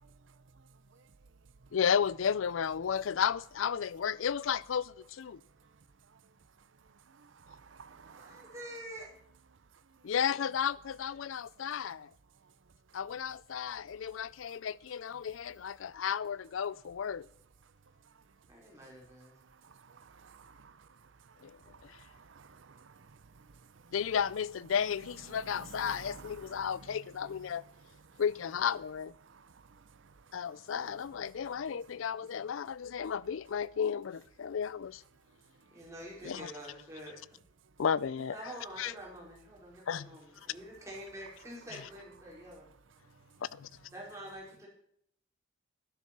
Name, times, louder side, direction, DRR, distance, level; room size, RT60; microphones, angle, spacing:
voice 1, 0.5-1.1 1.6-1.7 5.3-8.6 9.9-10.1 11.6-12.1 12.4-12.5 14.5-14.6 17.6-17.7 18.0-18.2 18.7-24.0 25.2-28.2 29.2-31.0 31.3-31.9 35.6-35.7 42.3-42.4 43.0-43.4, right 5 dB, 75° right, 0.7 m, -56 dB
voice 2, 1.7-5.4 10.0-12.1 12.9-17.3 21.4-21.6 23.9-27.6 28.2-29.1 30.3-35.0 36.2-36.5 37.8-38.4 38.8-38.9 39.9-40.1 43.4-43.7, left 7 dB, 80° left, 0.4 m, -33 dB
voice 3, 8.1-9.1 18.5-19.3 35.7-37.4 38.1-42.7 43.9-44.7, right 1 dB, 15° right, 4.7 m, -47 dB
12.0 x 10.0 x 6.1 m
head